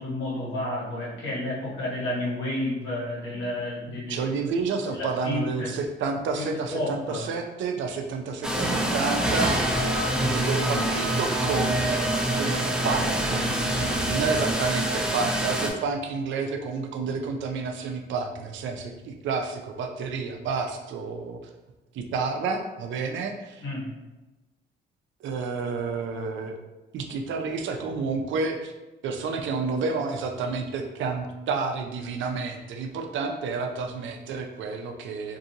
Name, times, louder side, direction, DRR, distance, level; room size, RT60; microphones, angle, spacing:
voice 1, 0.0-4.2 4.9-5.7 6.4-7.2 23.6-23.9, left 1 dB, 85° left, -6 dB, 1.3 m, -31 dB
voice 2, 4.1-10.0 10.3-21.4 21.9-23.6 25.2-26.6 26.9-28.7 29.0-35.4, right 4 dB, 75° right, 4 dB, 0.5 m, -30 dB
sound 1, 8.4-15.7, right 1 dB, 5° right, 0.4 m, -25 dB
2.6 x 2.6 x 2.7 m, 1.1 s
cardioid pair, 90°, 20 cm